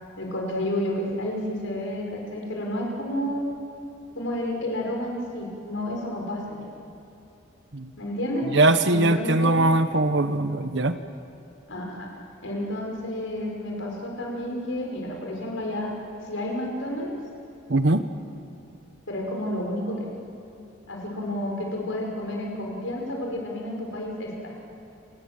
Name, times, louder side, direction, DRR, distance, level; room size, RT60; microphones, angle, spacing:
voice 1, 0.2-3.5 4.2-6.7 8.0-8.5 8.9-9.5 11.7-12.1 12.4-15.9 16.3-17.1 19.1-20.1 20.9-24.5, left 1 dB, 85° left, 0 dB, 5.5 m, -30 dB
voice 2, 8.5-10.9 17.7-18.0, right 2 dB, 60° right, 10 dB, 1.2 m, -21 dB
30.0 x 18.5 x 7.6 m, 2.9 s
head